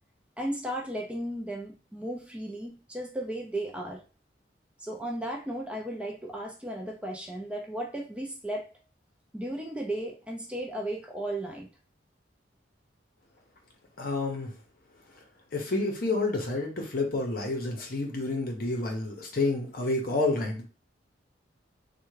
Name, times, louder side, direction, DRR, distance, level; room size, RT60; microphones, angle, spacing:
voice 1, 0.4-4.0 4.8-8.7 9.3-11.7, right 1 dB, 5° right, 0 dB, 0.4 m, -35 dB
voice 2, 14.0-14.5 15.5-20.6, left 2 dB, 50° left, 2 dB, 0.7 m, -29 dB
3.3 x 2.2 x 3.2 m, 0.35 s
head